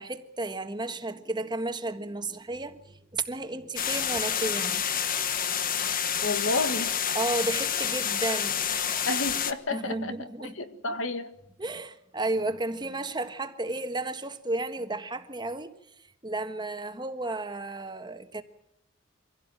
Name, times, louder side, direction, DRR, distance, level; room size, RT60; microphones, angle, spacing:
voice 1, 0.0-4.9 7.1-9.1 9.7-10.5 11.6-15.7 16.2-18.4, right 2 dB, 20° right, 1.4 m, -33 dB
sound 1, 3.8-9.5, left 8 dB, 45° left, 1.3 m, -28 dB
voice 2, 6.2-6.9 9.1-11.3, left 3 dB, 70° left, 1.8 m, -31 dB
24.5 x 16.5 x 8.9 m
head